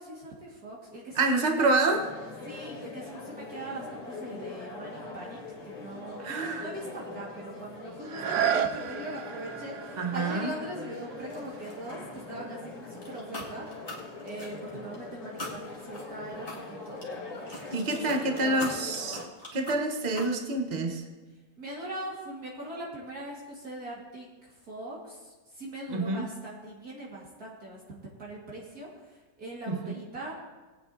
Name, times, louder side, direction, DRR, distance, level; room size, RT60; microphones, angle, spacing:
voice 1, 0.0-1.8 2.5-17.0 17.9-18.9 21.6-30.3, right 1 dB, 55° right, -5 dB, 2.3 m, -41 dB
voice 2, 1.1-2.0 6.2-6.7 10.0-10.5 17.7-19.2 19.5-21.0 25.9-26.2 29.7-29.9, right 2 dB, 30° right, 4 dB, 1.0 m, -27 dB
sound 1, 1.9-19.3, left 3 dB, 40° left, 2.1 m, -42 dB
sound 2, 8.0-13.7 14.2-14.3, right 8 dB, 70° right, 1.1 m, -34 dB
sound 3, 11.3-12.5 12.8-15.0 15.4-20.3, left 1 dB, 20° left, 2.2 m, -42 dB
20.0 x 9.1 x 2.8 m, 1.3 s
omnidirectional pair, 2.0 m